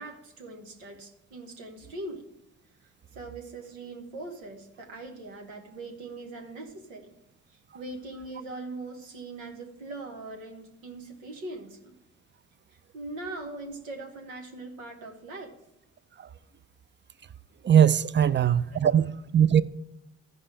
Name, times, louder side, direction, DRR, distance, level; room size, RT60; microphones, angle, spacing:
voice 1, 0.0-2.3 3.1-7.1 7.7-11.9 12.7-15.6 18.3-18.4 18.7-19.0, right 2 dB, 85° right, 1.3 m, -41 dB
voice 2, 17.6-19.6, right 9 dB, 30° right, 0.5 m, -20 dB
13.5 x 5.5 x 5.0 m
hypercardioid pair, 40°, 37 cm